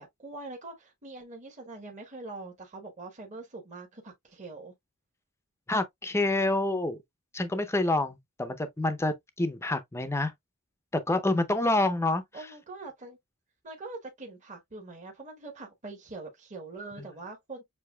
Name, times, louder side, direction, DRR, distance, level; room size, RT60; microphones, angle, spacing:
voice 1, 0.0-4.7 12.3-13.2 13.6-17.6, right 3 dB, 35° right, 1.1 m, -43 dB
voice 2, 5.7-7.0 7.3-10.3 10.9-12.2, left 2 dB, 10° left, 0.6 m, -27 dB
6.8 x 2.8 x 2.2 m
head